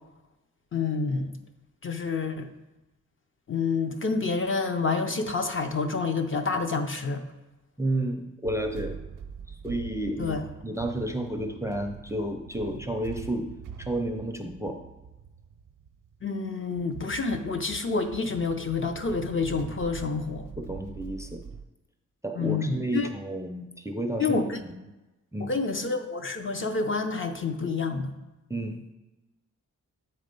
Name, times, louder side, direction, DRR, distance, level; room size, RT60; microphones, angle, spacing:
voice 1, 0.7-1.3 1.8-2.5 3.5-7.2 10.2-10.4 16.2-20.5 22.3-23.1 24.2-24.6 25.4-28.1, left 4 dB, 40° left, 6 dB, 0.6 m, -28 dB
voice 2, 7.8-8.9 9.5-10.4 10.6-13.5 13.8-14.8 20.6-21.4 22.2-24.4 24.6-24.7 25.3-25.5 28.5-28.8, right 1 dB, 10° right, 5 dB, 0.5 m, -31 dB
sound 1, 8.4-21.6, right 7 dB, 90° right, 0.6 m, -43 dB
8.3 x 4.3 x 5.2 m, 1.0 s
wide cardioid pair, 165°, 31 cm